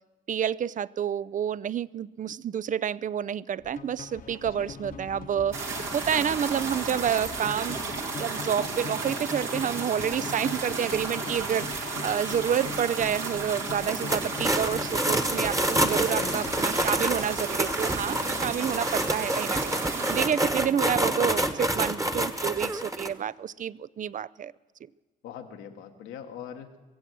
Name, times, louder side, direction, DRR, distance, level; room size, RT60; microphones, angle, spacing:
voice 1, 0.3-24.5, right 9 dB, 40° right, 0.4 m, -29 dB
sound 1, 3.6-19.8, left 5 dB, 45° left, 0.9 m, -42 dB
sound 2, 5.5-20.3, right 3 dB, 75° right, 2.4 m, -33 dB
sound 3, 13.8-23.1, right 1 dB, 15° right, 1.3 m, -28 dB
voice 2, 16.2-16.7 20.5-20.7 25.2-26.7, left 8 dB, 85° left, 1.2 m, -42 dB
22.5 x 7.9 x 7.5 m
hypercardioid pair, 50°, 20 cm